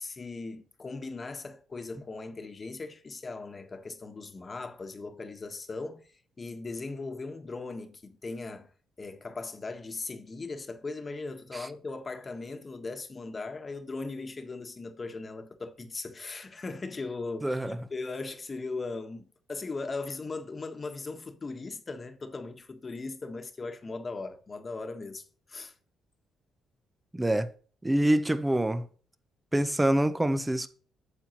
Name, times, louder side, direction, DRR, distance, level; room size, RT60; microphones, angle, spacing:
voice 1, 0.0-6.1 6.4-8.7 9.0-25.7, left 3 dB, 35° left, 1.4 m, -38 dB
voice 2, 17.4-17.8 27.1-27.5 27.8-28.9 29.5-30.7, right 1 dB, 15° right, 0.9 m, -25 dB
8.9 x 7.2 x 3.0 m
cardioid pair, 70°, 0 cm